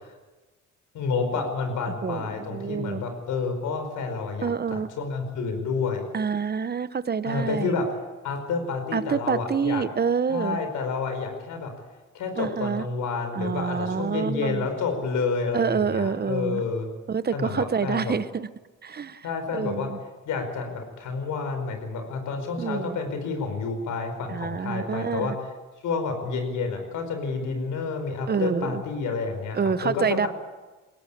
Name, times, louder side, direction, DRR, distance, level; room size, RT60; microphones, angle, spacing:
voice 1, 0.9-6.1 7.2-7.9 8.2-9.8 10.3-11.7 12.1-16.9 17.3-18.2 19.2-19.9 20.2-25.3 25.8-30.3, left 4 dB, 80° left, 6 dB, 4.9 m, -29 dB
voice 2, 2.0-3.0 4.4-4.9 6.1-7.8 8.9-10.6 12.4-12.9 13.3-14.7 15.5-16.6 17.1-18.5 18.8-20.0 22.6-23.0 24.3-25.4 28.3-28.8 29.5-30.3, right 6 dB, 30° right, 14 dB, 1.0 m, -27 dB
22.0 x 17.0 x 8.5 m, 1.2 s
cardioid pair, 90°, 30 cm